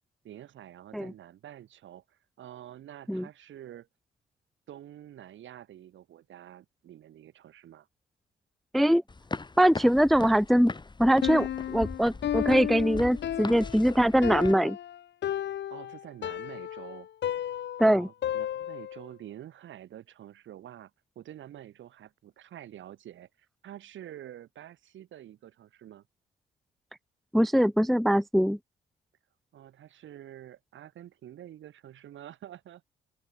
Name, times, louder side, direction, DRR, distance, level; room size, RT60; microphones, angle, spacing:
voice 1, 0.2-3.9 4.7-7.9 15.7-17.1 17.8-20.9 21.2-26.0 29.5-32.9, right 11 dB, 75° right, 5.9 m, -47 dB
sound 1, 9.1-14.5, left 3 dB, 20° left, 5.1 m, -39 dB
voice 2, 9.6-10.7 11.0-14.8 17.8-18.1 27.3-28.6, equal, ahead, 0.5 m, -22 dB
Piano, 11.2-19.1, left 11 dB, 65° left, 1.4 m, -33 dB
cardioid pair, 90°, 20 cm